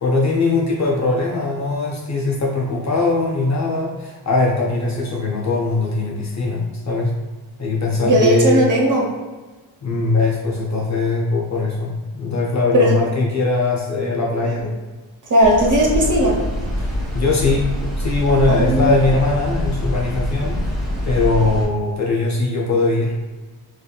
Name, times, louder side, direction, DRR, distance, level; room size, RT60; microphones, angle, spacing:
voice 1, 0.0-7.1 7.6-8.6 9.8-14.7 16.8-23.1, left 3 dB, 35° left, -1 dB, 0.5 m, -20 dB
voice 2, 8.0-9.0 12.7-12.9 15.3-16.4 18.5-19.0, equal, 35° right, -4 dB, 1.0 m, -16 dB
sound 1, 15.4-21.7, equal, ahead, 1.2 m, -24 dB
3.4 x 2.3 x 2.2 m, 1.3 s
cardioid pair, 65°, 50 cm